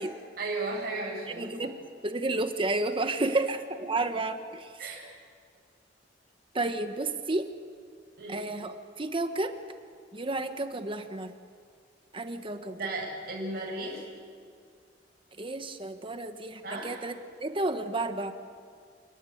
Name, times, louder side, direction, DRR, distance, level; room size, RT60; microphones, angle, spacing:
voice 1, 0.4-1.5 3.9-4.1 4.8-5.1 8.2-8.5 12.7-14.1 16.6-17.0, right 2 dB, 60° right, -2 dB, 7.5 m, -35 dB
voice 2, 1.3-1.8 2.0-4.7 6.5-7.5 8.3-9.5 10.1-11.3 12.1-12.8 15.4-18.3, right 2 dB, 30° right, 8 dB, 1.2 m, -31 dB
29.5 x 18.0 x 9.4 m, 2.1 s
head